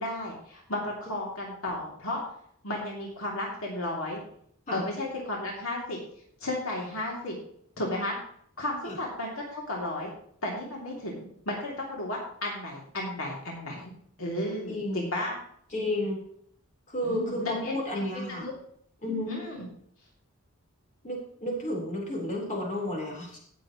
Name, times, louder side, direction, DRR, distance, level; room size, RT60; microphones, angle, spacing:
voice 1, 0.0-2.2 2.6-4.2 4.7-6.0 6.4-7.4 7.8-8.2 8.6-10.1 10.4-13.9 14.2-15.3 17.0-18.0 18.3-18.5 19.3-19.6, left 1 dB, 70° left, -2 dB, 2.9 m, -33 dB
voice 2, 14.6-15.1 15.7-16.2 16.9-18.5 19.0-19.3 21.0-23.4, left 1 dB, 35° left, -1 dB, 4.1 m, -32 dB
18.0 x 7.6 x 3.1 m, 0.65 s
head